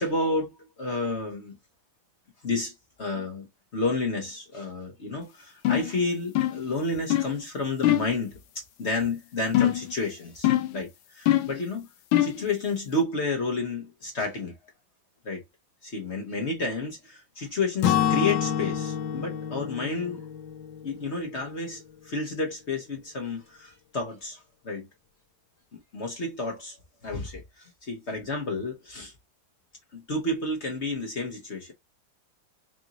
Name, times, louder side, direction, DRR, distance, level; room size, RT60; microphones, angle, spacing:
voice 1, 0.0-1.6 2.4-2.7 3.0-11.9 12.2-14.5 15.2-15.4 15.8-20.2 20.8-24.9 25.7-26.8 27.0-29.1 29.9-31.7, left 2 dB, 45° left, 0.9 m, -31 dB
sound 1, 5.7-5.9 6.4-6.7 7.1-7.4 7.8-8.2 9.5-9.9 10.4-10.8 11.3-11.6 12.1-12.4, left 13 dB, 90° left, 1.4 m, -23 dB
Acoustic guitar / Strum, 17.8-21.8, left 9 dB, 70° left, 1.2 m, -28 dB
4.8 x 2.6 x 2.8 m
omnidirectional pair, 2.2 m